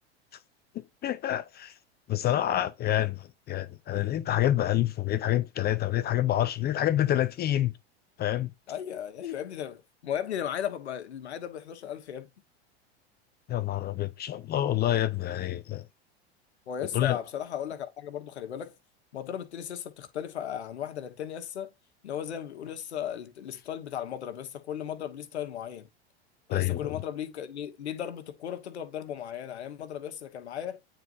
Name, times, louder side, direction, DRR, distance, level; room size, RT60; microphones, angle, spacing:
voice 1, 0.7-1.7 2.1-7.7 8.2-8.5 13.5-15.8 16.9-17.2 26.5-26.9, left 12 dB, 30° left, 0.6 m, -27 dB
voice 2, 8.7-12.3 16.7-18.8 19.1-21.7 22.0-25.9 26.5-30.8, left 9 dB, 90° left, 1.3 m, -36 dB
9.1 x 4.1 x 2.6 m
hypercardioid pair, 105°, 32 cm